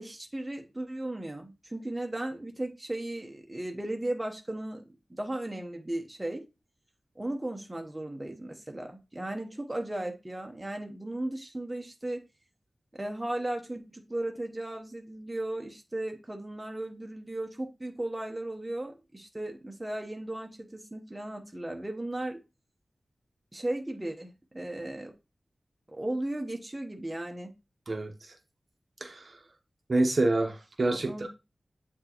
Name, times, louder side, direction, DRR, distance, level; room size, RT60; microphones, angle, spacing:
voice 1, 0.0-4.8 5.1-6.4 7.2-12.2 12.9-22.4 23.5-25.1 25.9-27.5 30.9-31.3, right 1 dB, 15° right, 3 dB, 1.0 m, -36 dB
voice 2, 29.0-29.4 29.9-31.3, right 2 dB, 50° right, 5 dB, 1.0 m, -27 dB
7.7 x 4.4 x 3.0 m, 0.27 s
wide cardioid pair, 100°, 0 cm